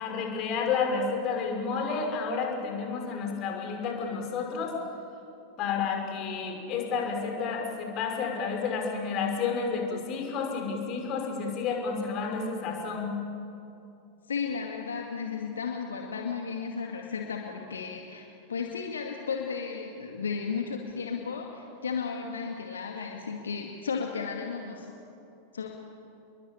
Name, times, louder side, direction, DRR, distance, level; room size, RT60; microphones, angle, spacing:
voice 1, 0.0-4.8 5.6-13.1, left 5 dB, 35° left, 2 dB, 5.9 m, -30 dB
voice 2, 14.3-24.9 25.5-25.7, left 5 dB, 70° left, 2 dB, 2.2 m, -34 dB
29.5 x 22.5 x 9.0 m, 2.7 s
figure-of-eight pair, 90°, 0 cm